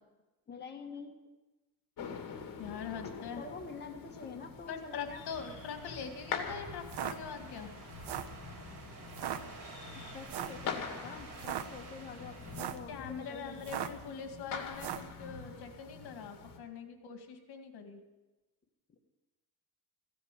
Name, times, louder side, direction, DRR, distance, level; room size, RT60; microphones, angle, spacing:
voice 1, 0.5-1.1 3.0-5.2 10.1-12.9 13.3-14.5, left 5 dB, 25° left, 1 dB, 1.9 m, -47 dB
sound 1, 2.0-16.6, left 5 dB, 55° left, 2.4 m, -45 dB
voice 2, 2.6-3.4 4.7-7.7 12.9-18.0, left 6 dB, 70° left, 5 dB, 2.1 m, -43 dB
sound 2, 5.2-12.7, right 3 dB, 55° right, 5.1 m, -51 dB
sound 3, 6.8-7.2 7.9-8.4 9.1-9.4 10.3-10.6 11.3-11.7 12.4-12.9 13.6-14.0 14.7-15.1, right 11 dB, 80° right, 1.1 m, -38 dB
15.5 x 10.0 x 8.3 m, 1.1 s
cardioid pair, 130°, 39 cm